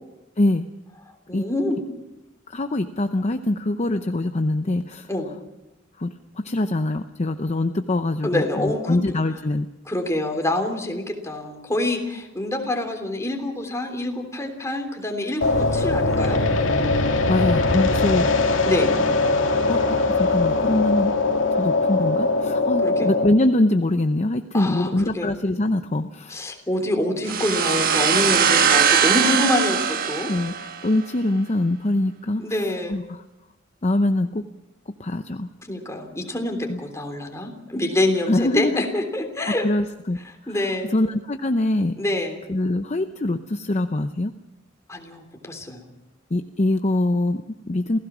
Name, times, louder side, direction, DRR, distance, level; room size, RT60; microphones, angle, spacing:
voice 1, 1.3-1.8 5.1-5.3 8.2-9.2 9.9-16.4 18.6-18.9 22.8-23.1 24.5-25.3 26.3-30.3 32.4-33.0 35.7-39.7 40.5-40.9 42.0-42.4 44.9-45.8, left 1 dB, 15° left, 4 dB, 3.3 m, -26 dB
voice 2, 2.5-5.1 6.0-9.7 17.3-18.3 19.7-21.1 21.5-26.4 30.3-32.4 32.9-33.2 33.8-34.4 35.0-35.5 36.7-36.8 38.3-38.8 39.6-40.2 40.5-41.9 42.5-44.3 46.3-48.0, left 1 dB, 35° left, 8 dB, 0.7 m, -23 dB
sound 1, 15.4-23.3, left 3 dB, 85° left, 2.2 m, -21 dB
sound 2, 27.3-31.0, right 7 dB, 50° right, 1.5 m, -20 dB
27.5 x 16.5 x 6.2 m, 0.97 s
head